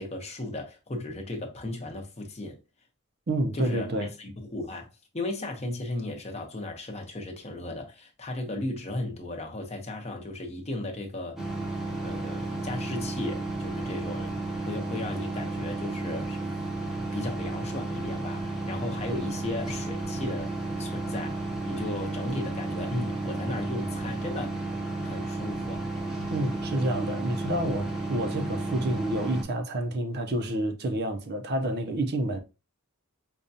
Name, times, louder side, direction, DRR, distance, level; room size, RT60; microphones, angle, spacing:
voice 1, 0.0-2.6 3.5-3.9 4.2-4.9 5.1-11.4 12.0-14.4 14.6-16.4 17.1-24.6 25.0-25.9, left 2 dB, 30° left, 0.8 m, -35 dB
voice 2, 3.3-4.1 26.3-32.4, right 1 dB, 45° right, 0.6 m, -29 dB
sound 1, 11.4-29.4, right 2 dB, ahead, 0.8 m, -33 dB
5.0 x 2.3 x 2.7 m
head